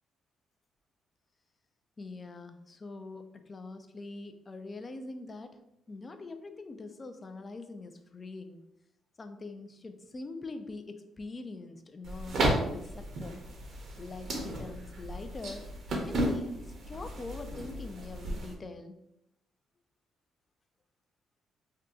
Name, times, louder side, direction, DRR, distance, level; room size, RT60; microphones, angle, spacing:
voice 1, 2.0-5.6 5.9-8.6 9.2-13.4 14.0-15.7 16.0-19.0, left 3 dB, 30° left, 8 dB, 0.4 m, -43 dB
sound 1, 12.0-18.5, right 1 dB, 60° right, 0.7 m, -34 dB
2.7 x 2.3 x 3.6 m, 0.83 s
cardioid pair, 90°, 0 cm